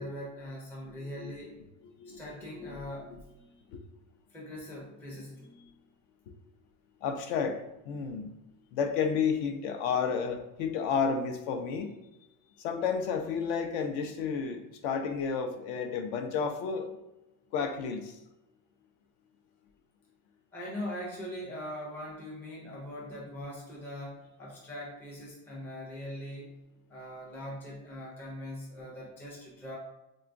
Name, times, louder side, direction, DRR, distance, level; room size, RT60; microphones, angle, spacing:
voice 1, 0.0-1.7 2.1-3.6 4.3-5.7 20.5-26.5 26.9-29.8, left 1 dB, 5° left, -4 dB, 0.4 m, -41 dB
voice 2, 7.0-7.6 7.9-8.3 8.7-11.9 12.6-16.9 17.5-18.1, left 6 dB, 65° left, 6 dB, 0.5 m, -31 dB
3.8 x 2.3 x 2.4 m, 0.95 s
cardioid pair, 155°, 45 cm